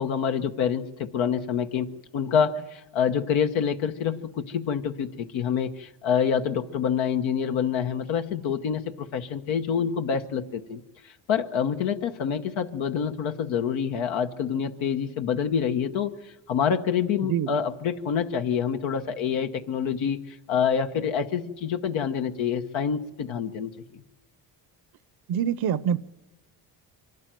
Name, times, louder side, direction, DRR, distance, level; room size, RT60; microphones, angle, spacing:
voice 1, 0.0-24.0, left 7 dB, 80° left, 1.2 m, -27 dB
voice 2, 25.3-26.0, right 9 dB, 55° right, 0.7 m, -25 dB
24.5 x 12.0 x 9.1 m
cardioid pair, 90°, 46 cm